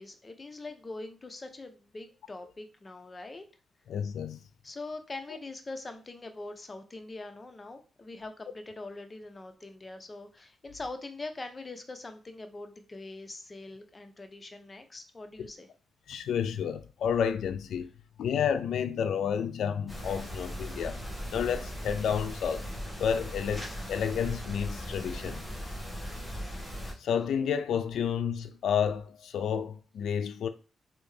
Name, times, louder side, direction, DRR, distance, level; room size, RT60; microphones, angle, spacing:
voice 1, 0.0-3.4 4.6-15.7, left 2 dB, 30° left, 0.6 m, -43 dB
voice 2, 3.9-4.4 15.4-15.5 16.1-17.9 18.2-21.0 21.3-22.6 23.0-25.4 27.0-30.5, left 8 dB, 80° left, 0.3 m, -30 dB
sound 1, 19.9-26.9, equal, 10° left, 1.4 m, -38 dB
3.4 x 2.7 x 3.2 m
cardioid pair, 85°, 0 cm